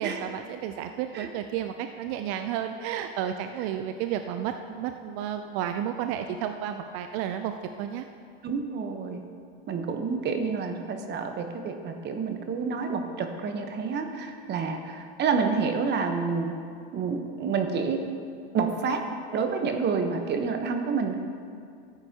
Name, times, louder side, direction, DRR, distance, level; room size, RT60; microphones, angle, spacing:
voice 1, 0.0-8.1, right 9 dB, 50° right, 7 dB, 0.5 m, -32 dB
voice 2, 8.4-9.2 9.7-16.5 16.9-18.0 18.5-19.0 19.3-21.2, right 5 dB, 35° right, 5 dB, 1.0 m, -28 dB
14.0 x 8.9 x 2.9 m, 2.3 s
supercardioid pair, 115°, 31 cm